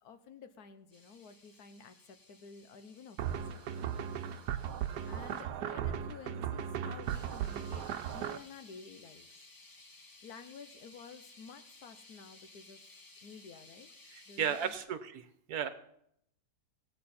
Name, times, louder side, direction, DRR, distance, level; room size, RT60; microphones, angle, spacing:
voice 1, 0.0-3.6 5.1-7.9 8.1-9.3 10.2-12.8 13.2-13.9 14.3-14.7, left 6 dB, 70° left, 10 dB, 1.4 m, -52 dB
sound 1, 0.9-5.4 7.0-14.9, left 2 dB, 25° left, 0.4 m, -58 dB
sound 2, 3.2-8.4, right 9 dB, 85° right, 1.3 m, -37 dB
voice 2, 14.1-15.7, right 8 dB, 70° right, 11 dB, 1.4 m, -35 dB
18.5 x 7.5 x 4.3 m, 0.76 s
omnidirectional pair, 1.7 m